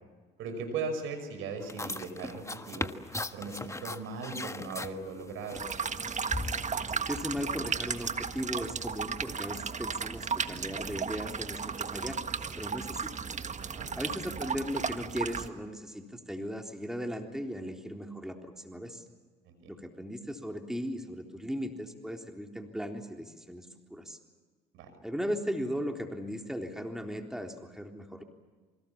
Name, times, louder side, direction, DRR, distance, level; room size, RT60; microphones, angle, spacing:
voice 1, 0.4-2.9 3.3-5.6 13.6-13.9 19.4-19.7 24.7-24.9, right 4 dB, 70° right, 7 dB, 5.8 m, -38 dB
sound 1, 1.6-6.9, left 2 dB, 15° left, 1.5 m, -39 dB
sound 2, 5.5-15.5, right 6 dB, 35° right, 1.6 m, -35 dB
voice 2, 6.9-12.2 12.6-13.1 14.0-19.0 19.7-24.2 25.0-28.2, equal, ahead, 3 dB, 3.7 m, -37 dB
27.5 x 25.0 x 7.3 m, 1.4 s
hypercardioid pair, 55°, 21 cm